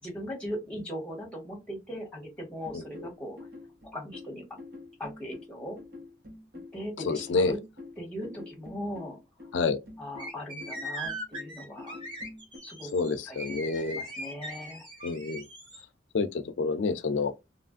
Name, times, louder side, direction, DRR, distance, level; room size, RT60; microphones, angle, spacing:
voice 1, 0.0-3.4 3.9-4.4 5.0-5.8 6.7-7.6 8.0-9.2 10.0-12.0 12.6-13.6 13.9-14.9, equal, 5° left, 1.3 m, -39 dB
sound 1, 2.6-12.6, left 2 dB, 55° right, 1.1 m, -46 dB
voice 2, 2.7-3.1 7.0-7.5 9.5-9.8 12.9-14.0 15.0-15.5 16.1-17.3, left 4 dB, 90° left, 0.4 m, -28 dB
sound 2, 10.2-15.8, right 1 dB, 25° right, 1.3 m, -40 dB
3.0 x 2.4 x 2.4 m
head